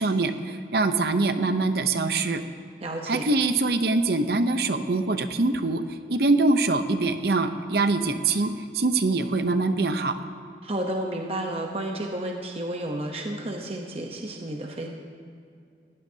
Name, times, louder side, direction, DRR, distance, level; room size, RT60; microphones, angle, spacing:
voice 1, 0.0-2.4 3.1-5.8 6.1-10.2, right 3 dB, 60° right, 9 dB, 0.8 m, -24 dB
voice 2, 2.8-3.3 10.6-14.9, right 1 dB, 35° right, 1 dB, 0.9 m, -31 dB
20.0 x 15.0 x 2.8 m, 2.4 s
head